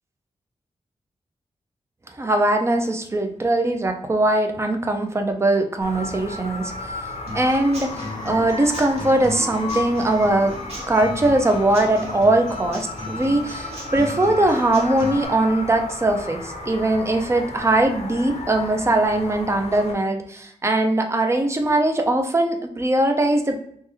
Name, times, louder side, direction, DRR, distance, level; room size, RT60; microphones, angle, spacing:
voice 1, 2.1-7.0 7.3-10.6 10.9-23.6, right 2 dB, 20° right, 4 dB, 0.4 m, -21 dB
sound 1, 5.8-19.9, left 2 dB, 55° left, 0.5 m, -34 dB
Human voice / Acoustic guitar / Drum, 7.3-15.2, left 1 dB, 50° right, 1.1 m, -36 dB
2.9 x 2.1 x 3.4 m, 0.68 s
wide cardioid pair, 150°, 13 cm